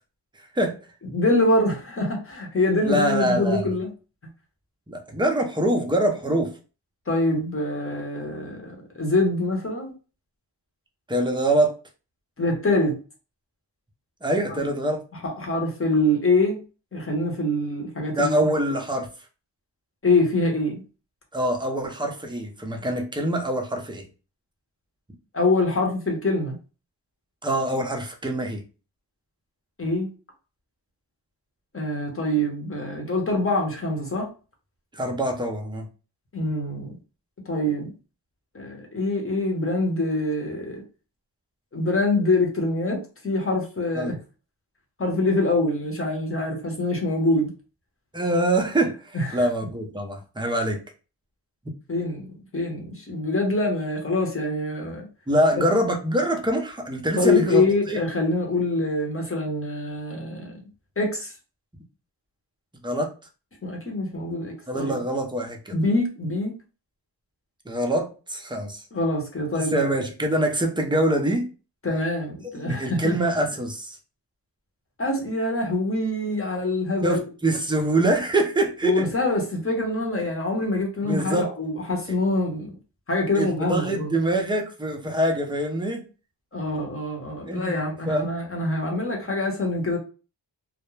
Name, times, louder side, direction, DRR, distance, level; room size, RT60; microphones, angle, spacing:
voice 1, 0.4-0.8 2.9-3.6 4.9-6.5 11.1-11.7 14.2-15.0 18.2-19.1 21.3-24.1 27.4-28.6 34.9-35.8 43.9-44.1 48.1-50.8 55.3-58.0 62.8-63.1 64.7-65.7 67.7-68.8 69.5-71.5 72.6-74.0 77.0-79.1 81.0-81.5 83.3-86.0 87.4-87.7 88.1-88.3, right 1 dB, 10° right, 0.6 m, -24 dB
voice 2, 1.1-3.9 7.1-9.9 12.4-13.0 14.5-14.6 15.1-16.6 16.9-18.3 20.0-20.8 25.3-26.6 29.8-30.1 31.7-34.3 36.3-37.0 37.5-37.9 38.5-40.8 41.7-44.1 45.0-47.5 49.1-49.4 51.9-55.1 57.2-60.6 61.0-61.3 63.6-64.9 65.7-66.5 68.9-69.9 71.8-73.1 75.0-77.2 78.8-82.8 83.1-84.1 86.5-90.0, left 2 dB, 30° left, 0.9 m, -25 dB
2.4 x 2.1 x 3.1 m
wide cardioid pair, 85°, 43 cm